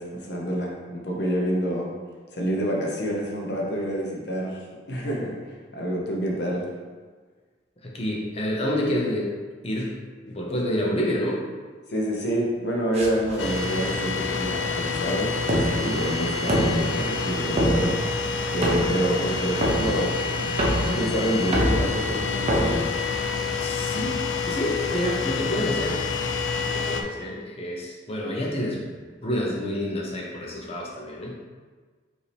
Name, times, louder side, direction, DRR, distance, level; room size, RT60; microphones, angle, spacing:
voice 1, 0.0-1.9 2.3-6.7 11.9-18.0 18.5-20.2 20.8-22.8 23.8-24.1, equal, 65° left, -2 dB, 0.8 m, -28 dB
voice 2, 7.8-9.3 9.6-10.0 10.3-11.4 23.6-26.0 26.7-31.5, equal, 35° left, -2 dB, 0.7 m, -28 dB
sound 1, 12.9-23.6, equal, 35° right, 0.7 m, -28 dB
sound 2, 13.4-27.0, left 4 dB, 90° left, 0.4 m, -28 dB
5.1 x 2.8 x 3.3 m, 1.5 s
head